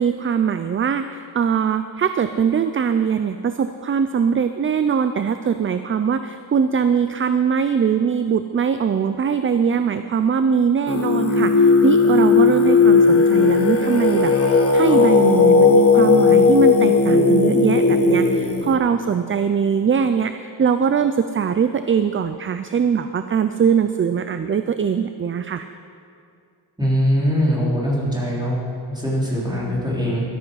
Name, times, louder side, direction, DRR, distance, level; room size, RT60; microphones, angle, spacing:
voice 1, 0.0-25.7, right 7 dB, 30° right, 10 dB, 0.4 m, -21 dB
Singing, 10.9-18.7, left 4 dB, 35° left, 1.2 m, -15 dB
voice 2, 26.8-30.2, equal, 10° right, -6 dB, 4.0 m, -22 dB
14.0 x 12.5 x 5.7 m, 2.4 s
wide cardioid pair, 155°, 43 cm